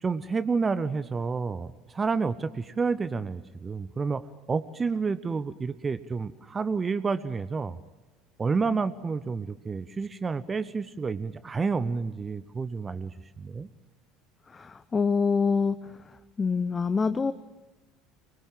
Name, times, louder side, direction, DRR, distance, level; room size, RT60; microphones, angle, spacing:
voice 1, 0.0-7.8 8.4-13.7, right 4 dB, 25° right, 14 dB, 0.8 m, -30 dB
voice 2, 14.5-15.8 16.1-17.3, left 5 dB, 25° left, 12 dB, 0.7 m, -26 dB
25.0 x 20.5 x 7.6 m, 1.1 s
figure-of-eight pair, 65°, 0 cm